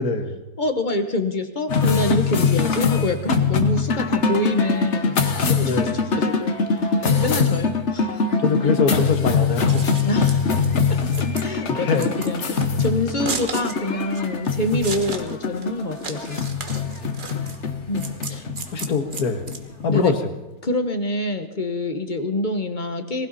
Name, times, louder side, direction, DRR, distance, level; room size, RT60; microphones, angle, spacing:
voice 1, 0.0-0.4 5.6-5.9 8.4-9.9 11.7-12.1 17.0-17.6 18.7-19.5 19.8-20.2, left 5 dB, 70° left, 7 dB, 2.0 m, -23 dB
voice 2, 0.6-8.2 10.0-10.5 10.9-16.4 17.9-18.5 19.9-20.1 20.6-23.3, left 1 dB, 35° left, 8 dB, 1.2 m, -26 dB
sound 1, 1.7-20.3, left 5 dB, 50° left, 1.4 m, -23 dB
Scissors, 9.5-20.1, right 4 dB, 35° right, 1.3 m, -35 dB
19.5 x 16.0 x 4.1 m, 1.1 s
omnidirectional pair, 1.7 m